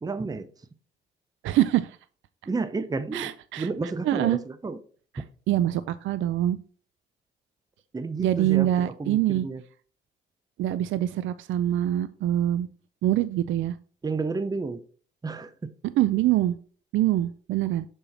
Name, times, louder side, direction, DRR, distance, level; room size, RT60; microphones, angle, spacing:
voice 1, 0.0-0.5 2.5-4.8 7.9-9.6 14.0-14.8 15.2-15.7, right 3 dB, 20° right, 12 dB, 0.7 m, -31 dB
voice 2, 1.4-2.0 3.1-3.7 4.0-4.4 5.1-6.6 8.2-9.5 10.6-12.7 13.0-13.7 16.0-16.6 16.9-17.9, right 13 dB, 80° right, 14 dB, 0.4 m, -24 dB
7.0 x 5.5 x 4.3 m, 0.42 s
cardioid pair, 90°, 20 cm